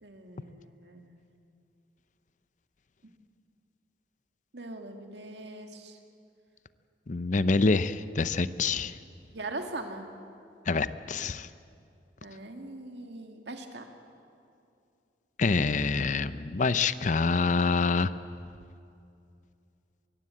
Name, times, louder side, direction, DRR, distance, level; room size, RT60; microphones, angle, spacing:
voice 1, 0.0-1.2 4.5-6.0 9.3-10.1 12.2-13.9, right 2 dB, 75° right, 4 dB, 2.1 m, -41 dB
voice 2, 7.1-9.0 10.7-11.5 15.4-18.1, left 4 dB, 45° left, 14 dB, 0.6 m, -26 dB
23.0 x 15.5 x 8.5 m, 2.5 s
head